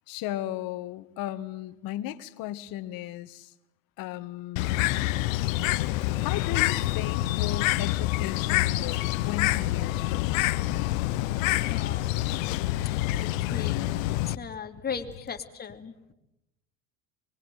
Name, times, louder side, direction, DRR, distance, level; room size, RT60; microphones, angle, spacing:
voice 1, 0.1-3.5 4.0-4.7 6.2-10.8, left 13 dB, 60° left, 12 dB, 1.8 m, -36 dB
Bird, 4.6-14.4, left 16 dB, 75° left, 1.1 m, -27 dB
voice 2, 11.7-12.5 12.9-15.9, left 6 dB, 25° left, 5 dB, 3.0 m, -38 dB
24.5 x 22.0 x 9.5 m, 0.91 s
supercardioid pair, 105°, 40 cm